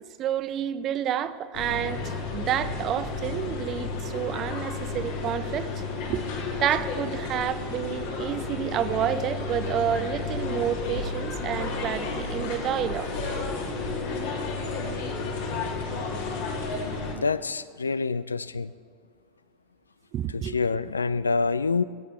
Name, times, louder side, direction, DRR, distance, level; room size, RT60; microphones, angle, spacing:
voice 1, 0.2-5.7 6.1-6.2 6.5-13.1 20.1-20.5, right 10 dB, 40° right, 13 dB, 0.6 m, -29 dB
sound 1, 1.5-17.1, left 4 dB, 60° left, 1.9 m, -32 dB
voice 2, 17.1-18.7 20.3-21.8, left 4 dB, 80° left, 16 dB, 0.3 m, -26 dB
17.5 x 8.5 x 4.4 m, 2.1 s
figure-of-eight pair, 80°, 0 cm